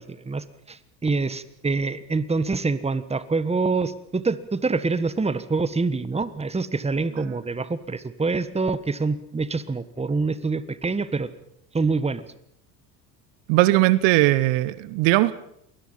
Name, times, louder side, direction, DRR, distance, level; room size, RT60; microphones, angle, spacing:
voice 1, 0.0-11.3 11.7-12.2, right 3 dB, 10° right, 14 dB, 1.4 m, -26 dB
voice 2, 13.5-15.3, right 18 dB, 60° right, 17 dB, 1.2 m, -19 dB
28.0 x 21.0 x 5.7 m, 0.75 s
hypercardioid pair, 75°, 49 cm